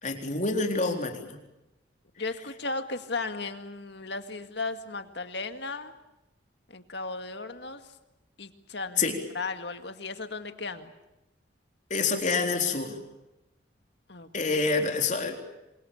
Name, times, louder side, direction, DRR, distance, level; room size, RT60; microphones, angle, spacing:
voice 1, 0.0-1.4 9.0-9.2 11.9-13.0 14.3-15.4, left 4 dB, 40° left, 4 dB, 4.0 m, -27 dB
voice 2, 2.2-5.9 6.7-7.9 8.4-11.0 14.1-14.3, left 3 dB, 60° left, 8 dB, 2.1 m, -36 dB
28.0 x 25.0 x 7.3 m, 0.94 s
head